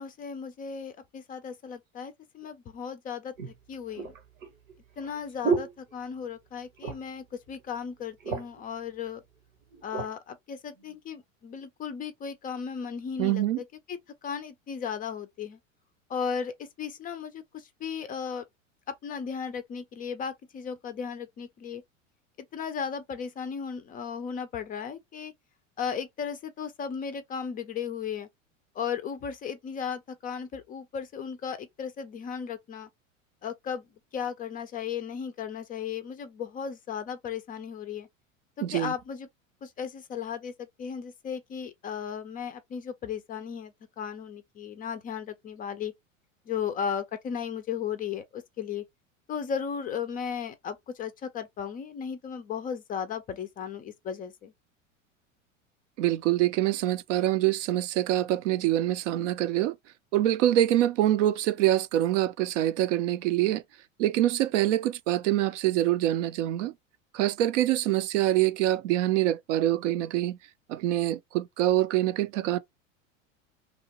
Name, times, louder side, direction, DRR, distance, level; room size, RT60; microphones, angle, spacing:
voice 1, 0.0-3.3 3.7-4.1 5.0-9.2 9.8-15.6 16.1-18.4 19.0-21.8 22.5-25.3 25.8-28.3 28.8-32.9 33.4-33.9 34.1-38.1 38.6-39.3 39.6-45.9 46.5-48.8 49.3-54.5, left 7 dB, 25° left, 0.3 m, -35 dB
sound 1, 2.4-2.5 3.4-6.5 6.8-7.2 7.6-7.7 8.0-8.7 9.4-10.1 10.8-11.0, right 5 dB, 90° right, 1.0 m, -33 dB
voice 2, 13.2-13.6 38.6-38.9 56.0-59.7 60.1-63.6 64.0-66.7 67.1-70.4 70.7-72.6, right 13 dB, 65° right, 0.5 m, -25 dB
2.9 x 2.1 x 2.8 m
hypercardioid pair, 90°, 39 cm